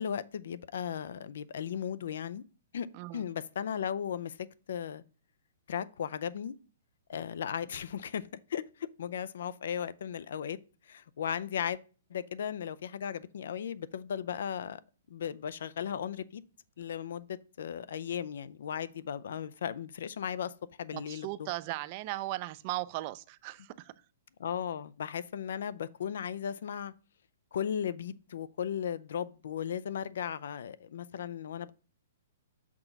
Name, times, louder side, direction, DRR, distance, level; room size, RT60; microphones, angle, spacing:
voice 1, 0.0-2.4 2.7-2.9 3.1-5.0 5.7-6.5 7.1-10.6 10.9-11.8 12.1-14.8 15.1-16.4 16.8-20.5 20.8-21.5 24.4-26.9 27.5-31.7, left 8 dB, 70° left, 0.5 m, -36 dB
voice 2, 20.9-23.9, right 18 dB, 35° right, 0.4 m, -37 dB
6.0 x 3.9 x 5.9 m
hypercardioid pair, 150°, 0 cm